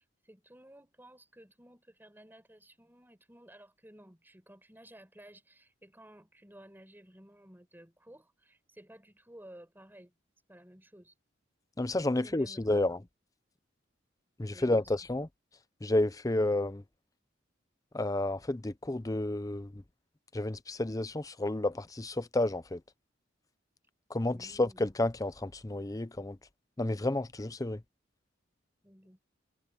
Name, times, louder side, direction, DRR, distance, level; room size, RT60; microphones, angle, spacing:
voice 1, 0.0-10.1 10.5-11.1 12.1-12.9 14.5-14.9 24.3-24.9 28.8-29.2, right 1 dB, 10° right, 4.7 m, -55 dB
voice 2, 11.8-13.0 14.4-15.3 15.8-16.8 17.9-19.8 20.3-22.8 24.1-26.4 26.8-27.8, left 2 dB, 20° left, 0.6 m, -31 dB
head